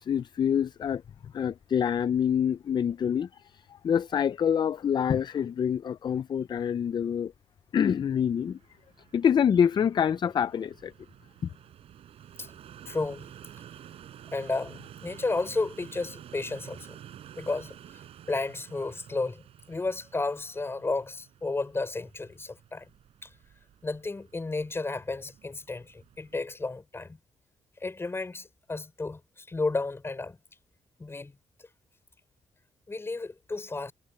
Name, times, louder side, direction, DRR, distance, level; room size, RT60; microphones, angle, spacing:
voice 1, 0.0-7.3 7.7-8.6 9.1-10.9, left 8 dB, 45° left, 0.5 m, -26 dB
sound 1, 8.2-26.5, right 10 dB, 75° right, 6.8 m, -51 dB
voice 2, 12.9-13.3 14.3-16.9 17.4-17.8 18.3-22.9 23.2-23.3 23.8-27.2 27.8-30.4 31.0-31.3 32.9-33.9, left 3 dB, 25° left, 5.5 m, -32 dB
cardioid pair, 90°, 10 cm